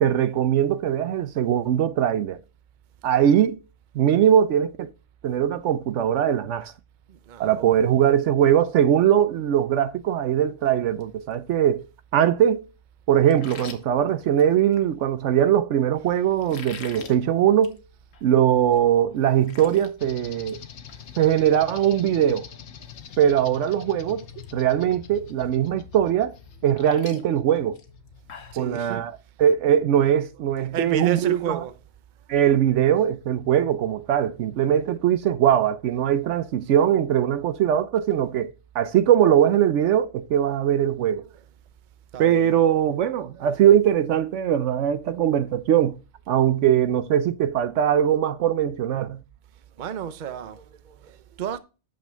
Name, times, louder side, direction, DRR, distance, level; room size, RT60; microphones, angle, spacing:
voice 1, 0.0-2.4 3.0-3.6 3.9-4.9 5.2-6.7 7.4-11.8 12.1-12.7 13.1-17.8 18.2-20.6 21.2-22.5 23.2-24.3 24.5-26.3 26.6-27.8 28.6-29.1 29.4-31.6 32.3-41.2 42.2-46.0 46.3-49.2, right 10 dB, 75° right, 0.9 m, -21 dB
voice 2, 7.1-7.9 16.1-16.2 28.5-29.0 30.3-30.5 30.7-31.8 35.9-36.0 41.2-41.5 42.1-42.6 43.2-43.5 49.8-51.6, right 8 dB, 45° right, 0.7 m, -33 dB
sound 1, 13.3-14.9 16.4-17.2 17.5-17.8 18.1-18.2 18.7-18.8 19.1-19.9 20.3-20.6 20.9-21.0 22.9-23.0 23.4-23.7 24.0-24.5 24.9-25.0 26.3-28.6, left 6 dB, 90° left, 1.4 m, -43 dB
sound 2, 20.0-28.8, left 9 dB, 65° left, 1.0 m, -44 dB
8.5 x 6.2 x 3.4 m
omnidirectional pair, 1.3 m